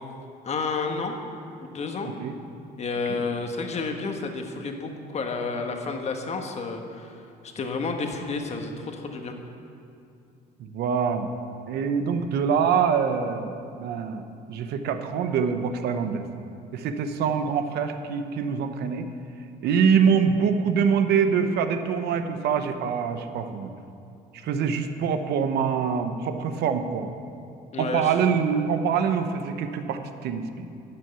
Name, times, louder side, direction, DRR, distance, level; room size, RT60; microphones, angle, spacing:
voice 1, 0.4-1.2 1.6-2.1 2.8-9.3 27.7-28.1, left 4 dB, 40° left, 4 dB, 1.3 m, -31 dB
voice 2, 10.6-11.3 11.7-16.3 16.7-19.1 19.6-23.7 24.4-27.1 27.8-30.7, right 6 dB, 75° right, 8 dB, 0.9 m, -25 dB
11.5 x 6.4 x 8.2 m, 2.6 s
cardioid pair, 110°, 17 cm